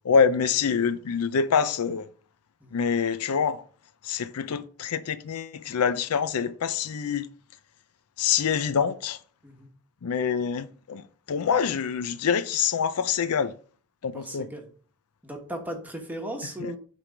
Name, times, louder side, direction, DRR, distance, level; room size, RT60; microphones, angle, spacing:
voice 1, 0.0-2.1 2.7-3.6 4.0-7.3 8.2-9.2 10.0-13.5 14.0-14.5 16.6-16.7, left 6 dB, 80° left, 0.5 m, -25 dB
voice 2, 14.1-14.7 15.2-16.8, right 1 dB, 10° right, 1.2 m, -37 dB
7.5 x 3.4 x 5.0 m
head